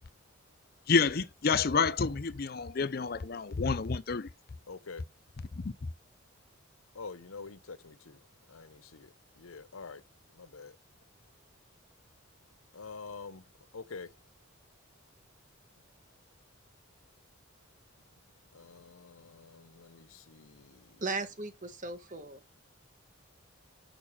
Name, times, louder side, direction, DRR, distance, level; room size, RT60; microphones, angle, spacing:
voice 1, 0.9-4.3 5.6-5.7, left 5 dB, 45° left, 0.5 m, -29 dB
voice 2, 4.7-5.0 6.9-8.2 8.5-10.0 10.4-10.8 12.7-13.4 13.7-14.1 18.5-20.9, left 4 dB, 85° left, 0.9 m, -47 dB
voice 3, 21.0-22.6, right 3 dB, 35° right, 1.6 m, -37 dB
6.7 x 6.2 x 7.1 m
head